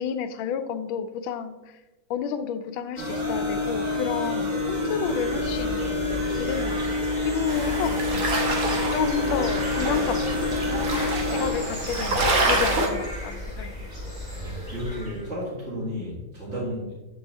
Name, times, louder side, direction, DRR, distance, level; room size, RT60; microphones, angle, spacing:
voice 1, 0.0-1.8 2.1-8.4 8.9-10.5 10.9-13.9, left 7 dB, 85° left, 10 dB, 1.3 m, -31 dB
sound 1, 3.0-11.5, left 2 dB, 80° right, 3.2 m, -27 dB
sound 2, 5.3-15.3, left 1 dB, 10° right, 2.7 m, -35 dB
sound 3, 7.5-12.9, right 2 dB, 55° right, 1.4 m, -27 dB
voice 2, 14.3-16.9, equal, 35° right, -10 dB, 2.4 m, -33 dB
8.6 x 4.7 x 4.0 m, 1.1 s
omnidirectional pair, 2.1 m